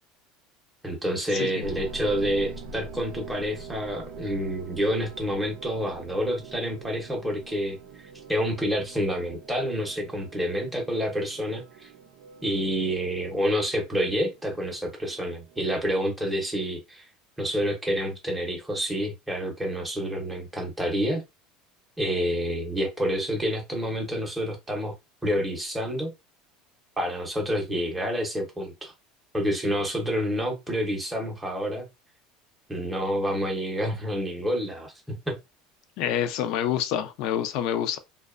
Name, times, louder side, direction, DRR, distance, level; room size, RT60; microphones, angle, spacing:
voice 1, 0.8-7.8 8.3-11.9 12.4-17.1 17.4-21.2 22.0-24.9 25.2-26.1 27.0-28.9 29.3-31.9 32.7-35.4, equal, 5° right, 0.7 m, -28 dB
sound 1, 1.6-15.6, right 4 dB, 80° right, 0.5 m, -44 dB
voice 2, 36.0-38.0, left 10 dB, 60° left, 0.4 m, -27 dB
2.6 x 2.1 x 2.4 m
cardioid pair, 150°, 0 cm